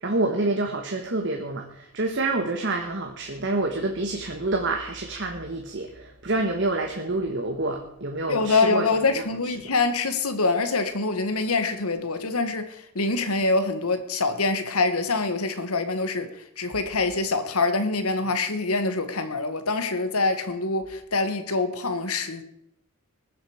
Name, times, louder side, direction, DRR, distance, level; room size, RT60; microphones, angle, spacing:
voice 1, 0.0-8.8, right 2 dB, 55° right, 1.4 m, -27 dB
voice 2, 8.3-22.4, left 3 dB, 80° left, 1.5 m, -25 dB
20.5 x 7.7 x 5.0 m
head